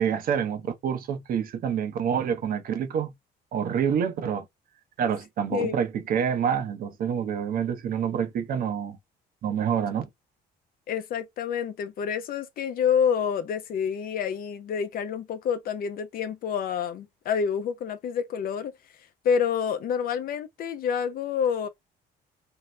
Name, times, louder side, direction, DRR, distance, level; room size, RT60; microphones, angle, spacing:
voice 1, 0.0-3.1 3.5-4.5 5.0-9.0 9.4-10.1, right 8 dB, 60° right, 0.8 m, -27 dB
voice 2, 10.9-18.7 19.2-21.7, left 7 dB, 60° left, 0.6 m, -28 dB
2.7 x 2.0 x 3.1 m
cardioid pair, 110°, 17 cm